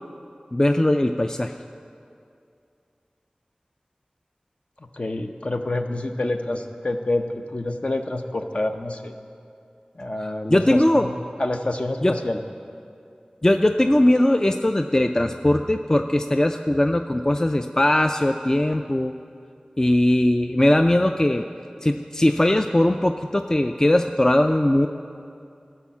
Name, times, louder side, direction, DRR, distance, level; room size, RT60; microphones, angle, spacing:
voice 1, 0.5-1.5 10.5-11.1 12.0-12.1 13.4-19.1 19.8-21.4 21.8-24.9, left 1 dB, 25° left, 7 dB, 0.3 m, -20 dB
voice 2, 4.8-9.1 10.0-12.4, left 2 dB, 50° left, 5 dB, 0.7 m, -27 dB
13.0 x 5.6 x 7.2 m, 2.5 s
wide cardioid pair, 50°, 3 cm